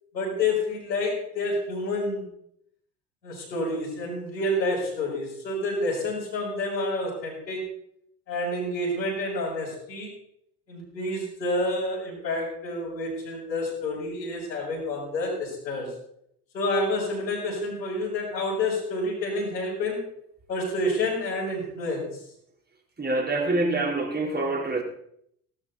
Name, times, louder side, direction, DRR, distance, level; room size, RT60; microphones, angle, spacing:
voice 1, 0.1-2.3 3.2-7.7 8.3-10.1 10.7-15.9 16.5-20.1 20.5-22.2, left 2 dB, 80° left, -7 dB, 6.4 m, -29 dB
voice 2, 23.0-24.8, right 2 dB, 20° right, 2 dB, 4.2 m, -26 dB
18.0 x 12.5 x 4.2 m, 0.71 s
figure-of-eight pair, 65°, 50 cm